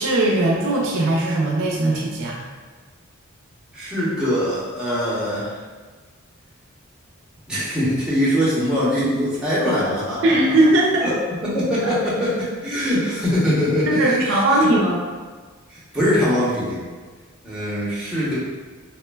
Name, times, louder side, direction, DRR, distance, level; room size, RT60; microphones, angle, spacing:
voice 1, 0.0-2.4 10.2-11.0 11.8-11.9 12.7-12.8 13.9-15.0, right 1 dB, 65° right, -3 dB, 0.4 m, -19 dB
voice 2, 3.7-5.5 7.5-10.3 11.0-11.2 11.4-14.2 14.5-14.7 15.7-16.8 17.4-18.4, equal, 5° right, -10 dB, 0.8 m, -22 dB
3.0 x 2.1 x 2.2 m, 1.4 s
head